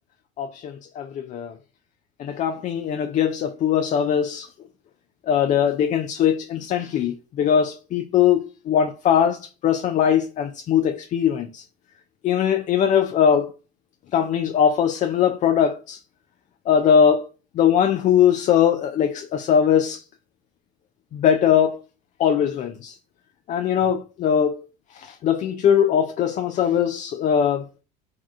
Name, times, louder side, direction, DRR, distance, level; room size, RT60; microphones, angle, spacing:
voice 1, 0.4-1.5 2.2-4.5 5.3-11.6 12.2-13.5 14.1-16.0 16.7-17.3 17.5-20.0 21.1-21.8 22.2-23.0 23.5-24.7 24.9-27.7, left 8 dB, 40° left, 0.4 m, -21 dB
2.6 x 2.3 x 3.5 m
hypercardioid pair, 80°, 20 cm